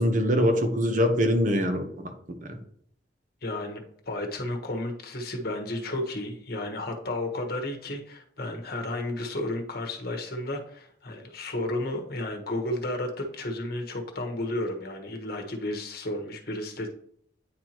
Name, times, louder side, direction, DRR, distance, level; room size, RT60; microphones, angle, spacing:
voice 1, 0.0-2.6, equal, 45° right, 5 dB, 1.0 m, -24 dB
voice 2, 3.4-16.9, left 1 dB, 55° left, 3 dB, 1.3 m, -32 dB
9.4 x 4.6 x 3.0 m, 0.65 s
head